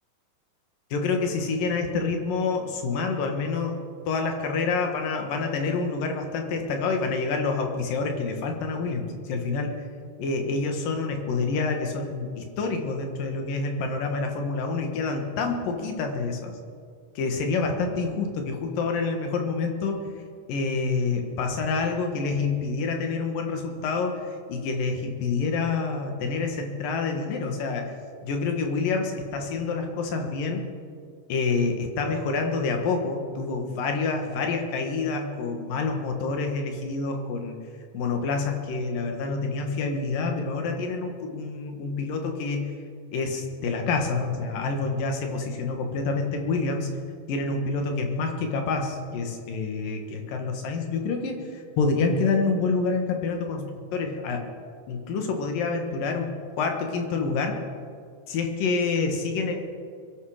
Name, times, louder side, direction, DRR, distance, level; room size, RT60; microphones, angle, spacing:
voice 1, 0.9-9.9 10.2-16.5 17.2-20.0 20.5-24.2 24.5-27.9 28.2-30.6 31.3-37.6 37.9-42.8 43.1-47.0 47.3-54.4 54.9-57.6 58.3-59.5, left 4 dB, 85° left, 4 dB, 3.3 m, -27 dB
23.0 x 12.0 x 5.0 m, 2.2 s
omnidirectional pair, 3.8 m